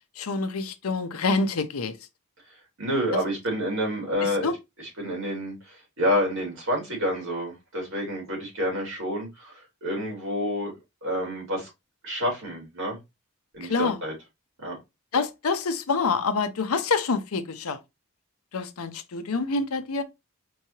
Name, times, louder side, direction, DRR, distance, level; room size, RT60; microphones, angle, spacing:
voice 1, 0.2-2.0 4.2-4.5 13.6-14.0 15.1-17.8 18.5-20.0, left 4 dB, 80° left, 0.6 m, -27 dB
voice 2, 2.8-4.5 4.8-10.7 11.0-11.7 12.0-13.0 13.5-14.1 14.6-14.8, equal, 60° right, 2.8 m, -28 dB
4.6 x 3.1 x 2.8 m
head